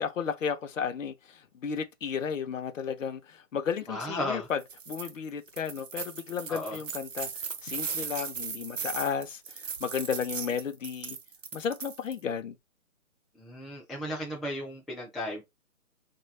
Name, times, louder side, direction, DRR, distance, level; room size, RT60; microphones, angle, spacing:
voice 1, 0.0-11.2 11.5-12.6, left 7 dB, 65° left, 0.5 m, -33 dB
voice 2, 3.9-4.5 6.5-6.8 13.3-15.4, left 1 dB, ahead, 0.3 m, -35 dB
sound 1, 4.6-5.1 5.5-12.2, right 6 dB, 60° right, 0.7 m, -38 dB
3.2 x 2.2 x 3.1 m
figure-of-eight pair, 155°, 42 cm